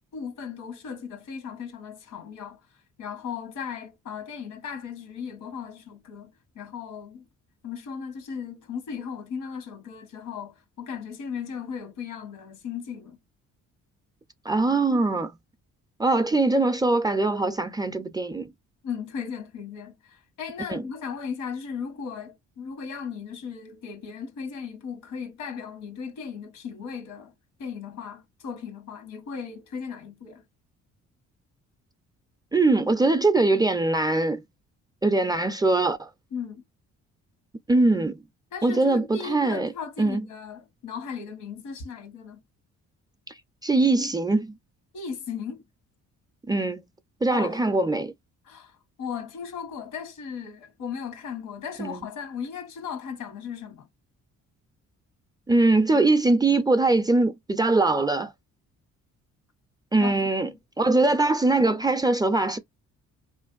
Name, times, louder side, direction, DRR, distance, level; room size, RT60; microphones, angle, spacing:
voice 1, 0.1-2.6 3.0-7.3 7.6-13.2 18.8-27.3 27.6-30.4 36.3-36.6 38.5-42.4 44.9-45.6 47.3-47.6 48.4-53.9 60.0-60.1 60.5-60.6 60.9-61.0, left 6 dB, 90° left, 1.1 m, -36 dB
voice 2, 14.5-15.3 16.0-18.5 20.7-20.8 32.5-34.4 35.0-36.1 37.7-38.2 38.6-39.7 40.0-40.2 43.6-44.5 46.5-46.8 47.2-48.1 51.8-52.0 55.5-58.3 59.9-60.5 60.8-62.6, right 2 dB, 15° right, 0.4 m, -22 dB
3.2 x 2.5 x 2.3 m
cardioid pair, 90°, 30 cm